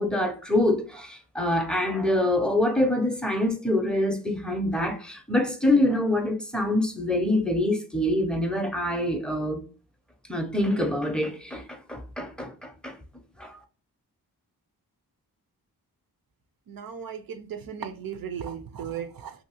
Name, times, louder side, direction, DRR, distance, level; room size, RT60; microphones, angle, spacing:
voice 1, 0.0-9.6 10.3-13.0 13.4-13.6, left 1 dB, ahead, 0.5 m, -25 dB
voice 2, 16.7-19.3, right 8 dB, 65° right, 0.5 m, -36 dB
2.7 x 2.6 x 2.8 m
cardioid pair, 70°, 39 cm